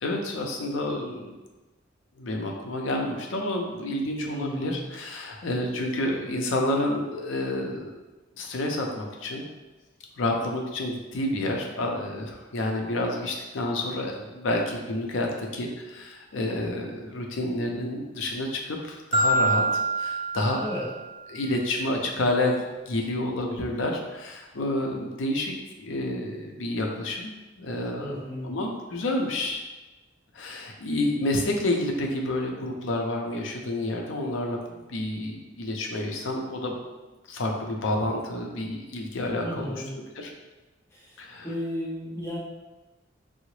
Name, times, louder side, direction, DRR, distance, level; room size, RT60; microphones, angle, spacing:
voice 1, 0.0-1.3 2.2-8.0 8.4-9.5 10.2-20.9 21.3-27.3 27.6-29.6 30.3-34.6 34.9-36.8 37.3-39.7 40.2-40.3 41.2-41.5, left 1 dB, 75° left, 1 dB, 0.5 m, -29 dB
voice 2, 4.2-4.8 20.6-20.8 28.0-28.5 39.4-39.9 40.9-41.1 41.4-42.4, left 1 dB, 15° left, -8 dB, 0.9 m, -34 dB
Marimba xylophone, 19.1-21.3, right 1 dB, 30° right, 0.5 m, -26 dB
3.7 x 2.0 x 3.0 m, 1.1 s
head